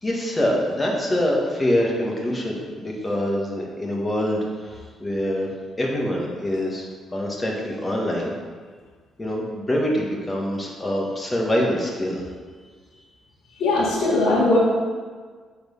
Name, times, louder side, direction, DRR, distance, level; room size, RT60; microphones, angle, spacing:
voice 1, 0.0-5.5 5.8-8.3 9.2-12.2, left 1 dB, 20° left, -1 dB, 1.8 m, -25 dB
voice 2, 13.6-14.6, left 2 dB, 80° left, -9 dB, 2.0 m, -19 dB
7.9 x 4.4 x 5.5 m, 1.5 s
cardioid pair, 90°, 0 cm